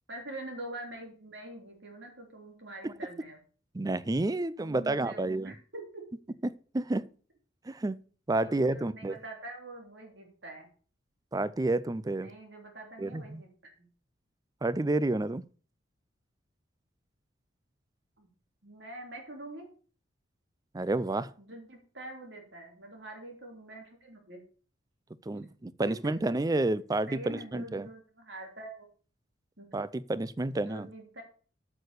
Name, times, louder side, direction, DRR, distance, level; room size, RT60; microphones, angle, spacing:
voice 1, 0.1-3.4 4.6-6.2 8.4-10.7 12.2-13.5 13.8-13.9 18.2-18.3 18.6-19.7 21.4-24.4 25.9-26.2 27.1-28.9 29.6-29.7 30.6-31.2, right 2 dB, 65° right, 3.3 m, -45 dB
voice 2, 3.7-5.5 6.4-7.0 7.7-8.0 8.3-9.2 11.3-12.3 13.0-13.4 14.6-15.4 20.7-21.3 25.3-27.9 29.7-30.9, right 2 dB, 20° right, 0.4 m, -30 dB
8.6 x 6.6 x 6.6 m
head